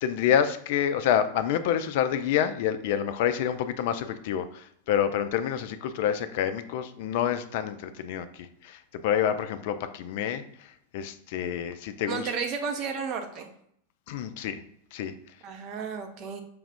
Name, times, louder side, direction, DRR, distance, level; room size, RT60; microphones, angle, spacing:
voice 1, 0.0-12.3 14.1-14.6 14.9-15.1, left 9 dB, 50° left, 10 dB, 0.4 m, -28 dB
voice 2, 12.1-13.5 15.4-16.4, right 5 dB, 40° right, 5 dB, 0.7 m, -32 dB
5.0 x 2.4 x 3.5 m, 0.71 s
figure-of-eight pair, 90°, 0 cm